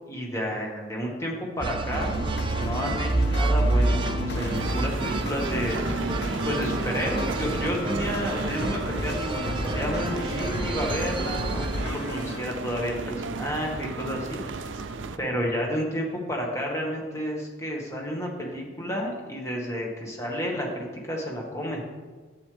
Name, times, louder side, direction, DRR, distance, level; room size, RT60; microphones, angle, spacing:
voice 1, 0.1-2.2 2.6-14.8 15.2-21.8, equal, 15° left, -1 dB, 1.6 m, -31 dB
sound 1, 1.6-11.9, right 2 dB, 25° right, 0.4 m, -28 dB
sound 2, 1.9-12.4, left 2 dB, 60° left, 0.7 m, -34 dB
sound 3, 4.3-15.2, right 4 dB, 85° right, 0.6 m, -35 dB
11.5 x 8.1 x 3.4 m, 1.4 s
head